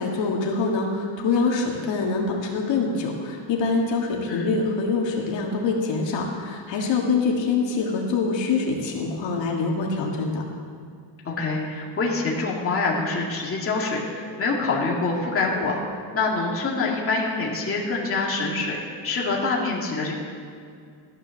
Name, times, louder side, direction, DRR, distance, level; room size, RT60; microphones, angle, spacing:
voice 1, 0.0-10.4, left 4 dB, 65° left, -1 dB, 2.1 m, -25 dB
voice 2, 11.2-20.1, left 3 dB, 25° left, -3 dB, 2.4 m, -25 dB
14.5 x 11.0 x 6.5 m, 2.2 s
cardioid pair, 155°, 48 cm